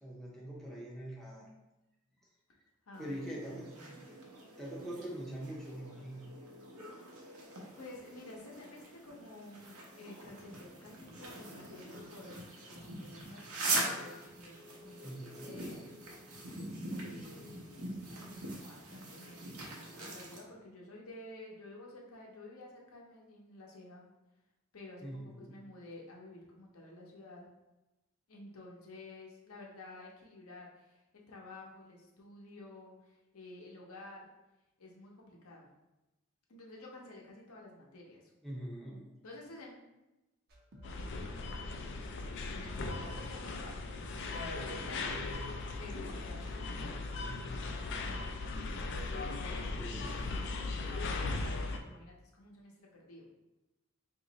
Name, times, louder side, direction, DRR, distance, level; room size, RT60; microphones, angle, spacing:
voice 1, 0.0-1.5 3.0-4.0 4.6-6.2 15.0-15.6 25.0-25.6 38.4-39.1 49.7-50.2, right 1 dB, ahead, -5 dB, 0.6 m, -43 dB
voice 2, 2.9-3.3 3.6-3.8 7.0-7.4 7.7-16.0 16.8-24.1 24.7-27.5 28.3-34.2 34.8-35.7 36.5-38.3 39.2-39.7 42.6-45.2 45.8-47.9 48.7-50.4 50.9-53.3, left 2 dB, 75° left, -1 dB, 0.8 m, -52 dB
sound 1, 2.9-20.4, right 2 dB, 80° right, 0.8 m, -43 dB
sound 2, 40.5-47.6 47.9-48.4, equal, 45° right, 0.6 m, -54 dB
sound 3, 40.8-51.8, left 3 dB, 55° left, 0.3 m, -38 dB
2.9 x 2.5 x 3.9 m, 0.99 s
head